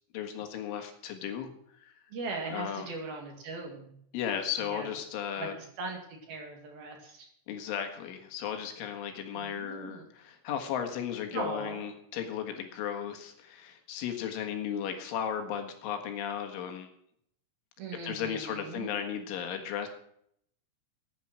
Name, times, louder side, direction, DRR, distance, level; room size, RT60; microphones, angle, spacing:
voice 1, 0.1-1.5 1.8-1.9 2.5-2.9 4.1-5.5 7.5-16.9 18.0-19.9, left 8 dB, 75° left, 5 dB, 4.0 m, -35 dB
voice 2, 2.1-3.9 4.6-4.9 5.4-7.3 9.3-10.1 11.3-11.8 17.8-18.9, right 3 dB, 55° right, 2 dB, 3.7 m, -39 dB
16.0 x 10.0 x 6.0 m, 0.69 s
omnidirectional pair, 5.8 m